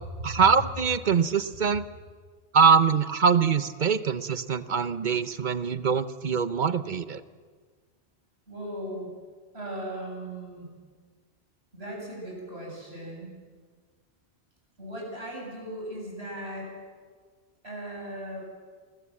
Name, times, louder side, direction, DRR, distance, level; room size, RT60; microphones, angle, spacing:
voice 1, 0.2-1.8 2.5-7.2, right 6 dB, 50° right, 13 dB, 1.0 m, -23 dB
voice 2, 8.5-9.1 9.5-10.7 11.7-13.3 14.8-16.7 17.6-18.4, right 1 dB, 80° right, -1 dB, 8.3 m, -37 dB
27.5 x 21.0 x 7.7 m, 1.6 s
omnidirectional pair, 1.1 m